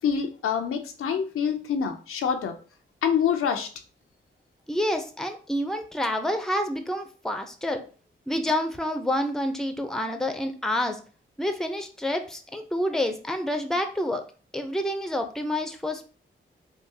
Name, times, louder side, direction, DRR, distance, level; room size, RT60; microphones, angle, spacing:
voice 1, 0.0-2.6 3.0-3.7, left 7 dB, 90° left, 5 dB, 0.5 m, -26 dB
voice 2, 4.7-7.8 8.3-11.0 11.4-14.2 14.5-16.1, left 1 dB, ahead, 6 dB, 0.5 m, -28 dB
3.6 x 2.3 x 2.7 m, 0.37 s
cardioid pair, 55°, 21 cm